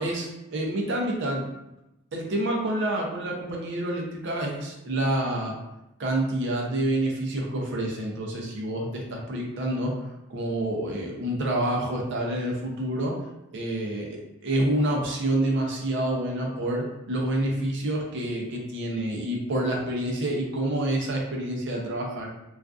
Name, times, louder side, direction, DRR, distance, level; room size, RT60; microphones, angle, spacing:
voice 1, 0.0-1.5 2.1-5.6 6.0-13.1 13.5-14.1 14.4-22.3, right 1 dB, 55° right, -1 dB, 0.5 m, -28 dB
2.4 x 2.3 x 2.3 m, 0.92 s
head